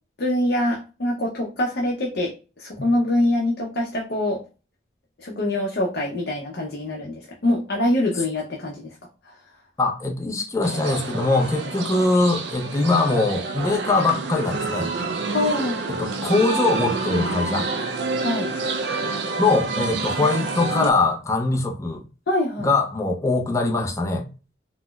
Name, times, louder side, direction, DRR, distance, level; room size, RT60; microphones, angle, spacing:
voice 1, 0.2-4.4 5.2-9.0 9.2-9.4 15.3-15.8 18.2-18.5 22.3-22.7, left 1 dB, 65° left, 0.6 m, -24 dB
voice 2, 9.8-14.9 16.0-17.7 19.4-22.0 22.6-24.3, left 3 dB, 15° left, 0.4 m, -22 dB
sound 1, 10.6-20.9, right 3 dB, 80° right, 0.4 m, -28 dB
4.1 x 2.0 x 2.2 m
head